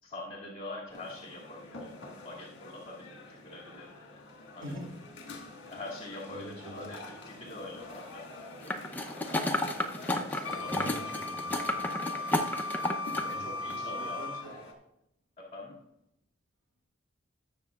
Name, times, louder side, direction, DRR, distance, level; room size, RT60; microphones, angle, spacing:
voice 1, 0.0-3.9 4.5-4.8 5.6-8.8 9.9-10.7 12.1-12.5 12.7-14.3 15.4-15.8, left 2 dB, 35° left, -6 dB, 2.4 m, -45 dB
sound 1, 0.9-14.7, left 2 dB, 60° left, 1.9 m, -47 dB
voice 2, 4.6-5.0 6.3-6.9 10.7-11.8 12.4-14.6, equal, 65° right, 0 dB, 2.7 m, -45 dB
sound 2, 8.7-13.3 13.7-13.8, left 1 dB, 10° left, 0.7 m, -32 dB
Wind instrument woodwind instrument, 10.4-14.5, left 2 dB, 75° left, 0.4 m, -37 dB
20.0 x 6.7 x 2.4 m, 0.81 s
head